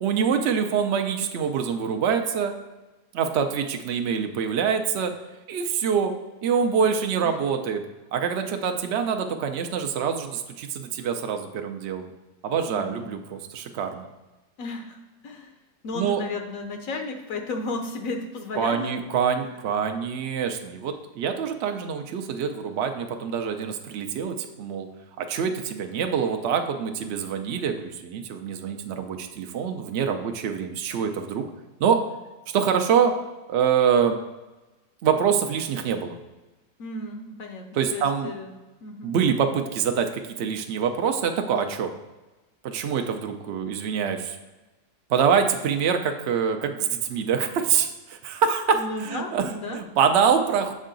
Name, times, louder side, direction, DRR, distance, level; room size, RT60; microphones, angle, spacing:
voice 1, 0.0-2.5 3.1-5.1 5.5-6.1 6.4-7.8 8.1-12.1 12.4-14.1 15.9-16.2 18.6-24.9 25.2-31.5 31.8-32.0 32.5-33.1 33.5-34.2 35.0-36.2 37.7-38.3 39.0-41.9 42.6-44.4 45.1-50.7, right 7 dB, 70° right, 5 dB, 0.6 m, -25 dB
voice 2, 12.7-13.1 14.6-15.0 15.2-15.5 15.8-19.0 36.8-38.5 38.8-39.2 48.7-49.8, left 3 dB, 65° left, 4 dB, 1.0 m, -34 dB
6.4 x 4.5 x 3.8 m, 1.1 s
omnidirectional pair, 1.7 m